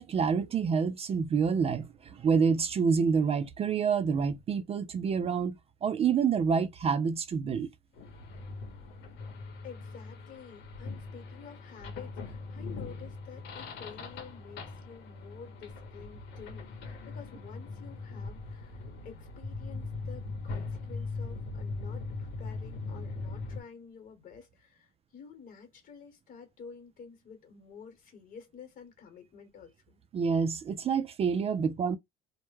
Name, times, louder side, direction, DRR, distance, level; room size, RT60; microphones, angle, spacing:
voice 1, 0.0-5.6 5.8-7.7 30.1-32.0, right 6 dB, 35° right, 0.4 m, -27 dB
sound 1, 8.0-23.6, left 3 dB, 90° left, 0.8 m, -40 dB
voice 2, 9.6-30.0, left 6 dB, 55° left, 1.1 m, -50 dB
2.1 x 2.1 x 3.0 m
cardioid pair, 110°, 17 cm